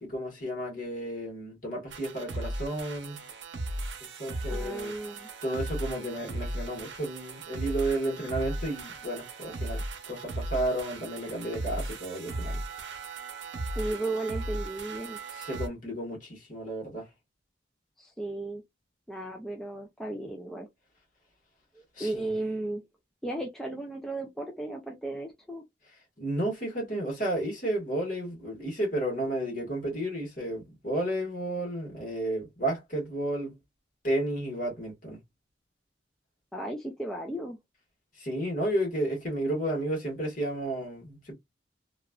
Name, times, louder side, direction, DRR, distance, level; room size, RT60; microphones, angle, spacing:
voice 1, 0.0-3.2 4.2-4.9 5.4-12.6 15.3-17.1 22.0-22.3 26.2-33.6 34.0-35.2 38.2-41.3, right 1 dB, 45° left, 1.4 m, -32 dB
sound 1, 1.9-15.7, right 2 dB, 80° right, 0.7 m, -37 dB
voice 2, 4.5-5.3 13.8-15.2 18.0-18.6 19.1-20.7 21.8-22.8 23.2-25.6 36.5-37.6, right 2 dB, ahead, 0.3 m, -35 dB
3.0 x 2.4 x 2.2 m
head